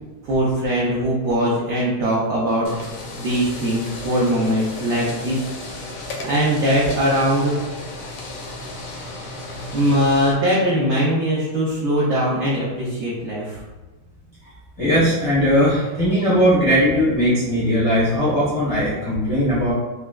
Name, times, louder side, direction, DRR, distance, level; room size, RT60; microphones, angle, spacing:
voice 1, 0.2-2.7 3.1-5.4 6.2-7.5 9.7-13.6, equal, 75° right, -5 dB, 1.0 m, -21 dB
sound 1, 2.6-10.3, left 2 dB, 75° left, 1.3 m, -34 dB
voice 2, 14.8-19.7, equal, 55° left, -11 dB, 0.3 m, -18 dB
4.1 x 2.2 x 2.3 m, 1.2 s
omnidirectional pair, 2.4 m